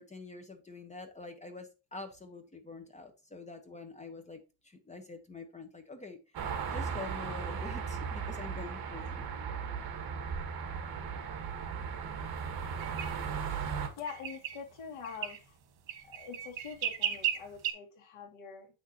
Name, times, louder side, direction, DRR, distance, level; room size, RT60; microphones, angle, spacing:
voice 1, 0.0-9.3, left 3 dB, 15° left, 1.0 m, -46 dB
sound 1, 6.3-13.9, right 6 dB, 50° right, 1.5 m, -37 dB
sound 2, 12.8-13.1 14.1-14.6 15.0-15.4 15.9-17.7, right 10 dB, 65° right, 1.6 m, -35 dB
voice 2, 14.0-15.5 16.0-18.7, left 6 dB, 70° left, 2.4 m, -44 dB
8.0 x 6.2 x 2.9 m
cardioid pair, 160°, 48 cm